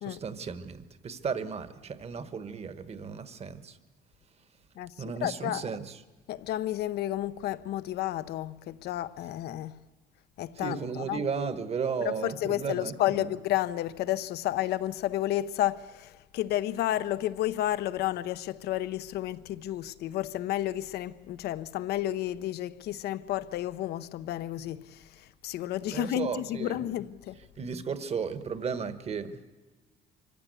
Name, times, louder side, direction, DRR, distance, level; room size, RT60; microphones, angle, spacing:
voice 1, 0.0-3.8 5.0-6.0 10.6-13.3 25.9-26.8 27.6-29.4, right 5 dB, 40° right, 1.3 m, -34 dB
voice 2, 5.2-5.6 6.3-9.8 10.4-11.2 12.0-27.4, left 13 dB, 75° left, 0.7 m, -31 dB
24.0 x 15.5 x 8.4 m
cardioid pair, 110°, 17 cm